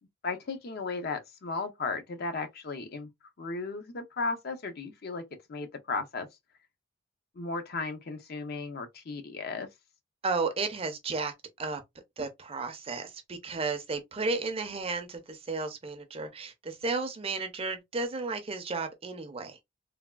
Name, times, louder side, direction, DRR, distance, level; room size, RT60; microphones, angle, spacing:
voice 1, 0.2-3.1 3.4-5.2 5.5-6.3 7.4-9.7, left 3 dB, 50° left, 0.5 m, -35 dB
voice 2, 10.2-11.8 12.2-19.6, right 3 dB, 30° right, 0.5 m, -33 dB
3.3 x 2.2 x 2.2 m
head